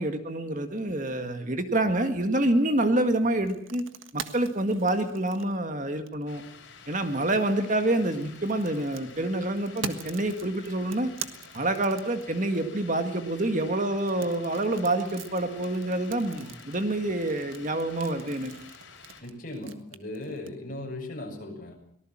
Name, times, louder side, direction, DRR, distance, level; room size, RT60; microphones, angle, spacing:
voice 1, 0.0-3.8 4.1-6.4 6.9-11.1 11.5-18.5, right 1 dB, 40° right, 7 dB, 1.8 m, -27 dB
sound 1, 3.4-6.4 7.8-12.6 14.0-20.5, right 7 dB, 75° right, 1.7 m, -43 dB
sound 2, 6.3-19.2, left 5 dB, 60° left, 6.5 m, -49 dB
voice 2, 19.2-21.7, left 1 dB, 45° left, 2 dB, 7.1 m, -37 dB
24.0 x 19.0 x 7.5 m, 0.67 s
head